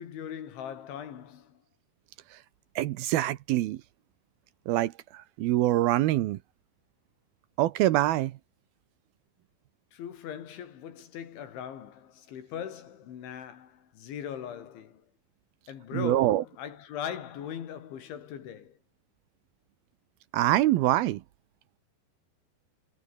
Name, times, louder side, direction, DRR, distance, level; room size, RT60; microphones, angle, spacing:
voice 1, 0.0-1.6 9.9-15.1 15.7-18.8, left 9 dB, 80° left, 5.3 m, -40 dB
voice 2, 2.8-3.8 4.7-6.4 7.6-8.4 15.9-16.4 20.3-21.2, right 15 dB, 75° right, 2.3 m, -25 dB
omnidirectional pair, 5.3 m